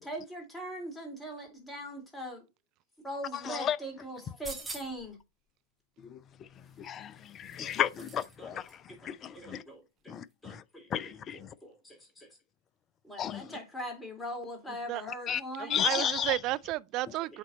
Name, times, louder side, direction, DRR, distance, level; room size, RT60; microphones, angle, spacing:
voice 1, 0.0-2.5 3.0-5.2 7.6-7.8 8.4-10.2 10.4-12.3 13.0-15.8 17.3-17.4, equal, 10° left, 3.5 m, -42 dB
voice 2, 3.5-3.8 6.1-6.2 6.8-8.6 9.0-9.6 10.1-10.6 10.9-11.5 13.2-13.4 15.3-15.4 15.7-16.4, left 9 dB, 30° left, 0.5 m, -33 dB
sound 1, 4.2-5.1 6.6-8.4 8.6-8.8, right 2 dB, 5° right, 1.6 m, -45 dB
voice 3, 15.6-17.4, right 17 dB, 40° right, 0.4 m, -32 dB
8.3 x 4.1 x 4.1 m
figure-of-eight pair, 90°, 0 cm